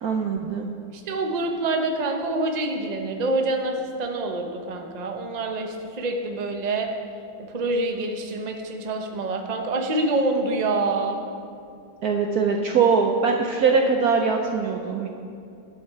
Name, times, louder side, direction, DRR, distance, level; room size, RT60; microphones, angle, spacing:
voice 1, 0.0-0.7 12.0-15.1, right 5 dB, 60° right, 3 dB, 1.0 m, -22 dB
voice 2, 0.9-6.9 7.4-11.2, right 2 dB, 30° right, 3 dB, 0.8 m, -26 dB
20.5 x 7.4 x 4.7 m, 2.5 s
omnidirectional pair, 2.2 m